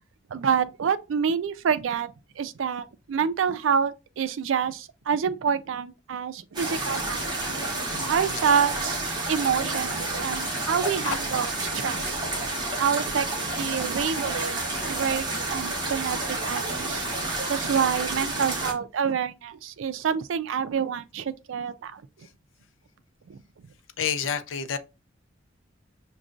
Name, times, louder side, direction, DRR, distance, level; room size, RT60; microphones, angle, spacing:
voice 1, 0.3-7.2 8.1-12.2 12.8-13.3 13.6-17.1 17.5-22.3 23.3-23.4, right 7 dB, 80° right, 0.4 m, -27 dB
sound 1, 6.5-18.7, right 2 dB, 20° right, 1.0 m, -30 dB
voice 2, 7.9-8.4 10.2-10.7 11.0-11.2 17.7-17.8 24.0-24.8, left 7 dB, 75° left, 0.4 m, -31 dB
6.1 x 2.2 x 2.5 m
head